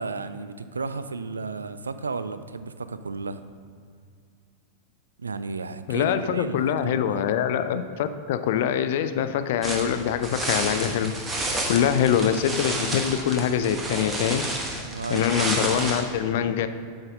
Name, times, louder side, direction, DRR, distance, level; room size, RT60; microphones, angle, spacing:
voice 1, 0.0-3.4 5.2-7.3 14.9-15.6, right 4 dB, 75° right, 11 dB, 0.3 m, -33 dB
voice 2, 5.9-14.4 15.1-16.7, left 9 dB, 55° left, 11 dB, 0.4 m, -24 dB
sound 1, 9.6-16.0, right 2 dB, 15° right, 1.0 m, -30 dB
8.0 x 4.0 x 5.3 m, 2.2 s
figure-of-eight pair, 90°, 0 cm